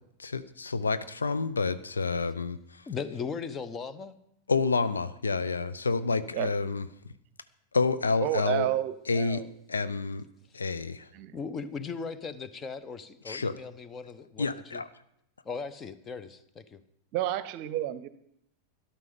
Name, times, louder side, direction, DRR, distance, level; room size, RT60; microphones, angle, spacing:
voice 1, 0.2-2.8 4.5-6.9 7.7-8.7 9.1-9.4 9.7-10.2 10.5-11.1 13.3-13.5 14.4-14.9, left 4 dB, 75° left, 13 dB, 0.6 m, -29 dB
voice 2, 2.9-4.1 11.3-14.8 15.4-16.8, left 5 dB, 20° left, 14 dB, 0.9 m, -38 dB
voice 3, 8.2-9.4 11.1-11.4 17.1-18.1, right 14 dB, 45° right, 16 dB, 0.7 m, -30 dB
13.0 x 11.5 x 5.2 m, 0.75 s
figure-of-eight pair, 90°, 0 cm